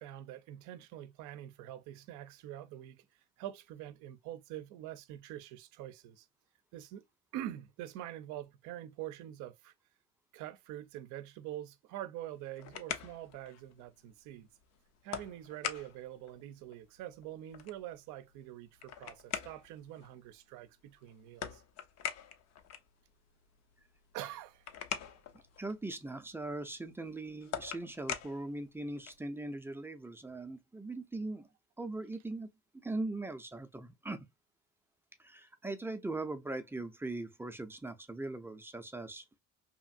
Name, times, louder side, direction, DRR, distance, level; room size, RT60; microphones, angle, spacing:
voice 1, 0.0-3.0 3.4-6.3 6.7-7.1 7.3-9.7 10.3-14.5 15.0-21.6 24.1-24.7, right 12 dB, 80° right, 0.5 m, -45 dB
sound 1, 12.2-29.3, left 8 dB, 60° left, 0.6 m, -46 dB
voice 2, 25.6-31.5 31.8-32.5 32.8-34.3 35.2-39.2, right 2 dB, 10° right, 0.4 m, -40 dB
2.9 x 2.5 x 2.4 m
cardioid pair, 95°, 30 cm